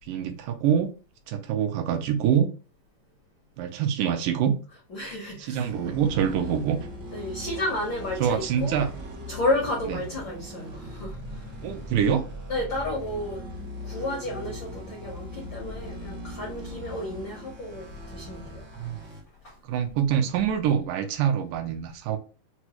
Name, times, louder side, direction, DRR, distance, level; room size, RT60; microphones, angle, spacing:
voice 1, 0.1-0.9 1.3-2.5 3.6-4.5 5.5-6.8 8.2-8.9 11.6-12.3 18.8-19.0 19.7-22.2, right 8 dB, 85° right, 2.3 m, -25 dB
voice 2, 4.9-5.7 7.1-8.8 9.3-11.5 12.5-13.4 13.8-18.8 19.4-19.6, left 1 dB, 85° left, 1.0 m, -32 dB
sound 1, 5.6-19.2, equal, 70° right, 1.0 m, -39 dB
6.0 x 2.0 x 2.9 m
omnidirectional pair, 3.8 m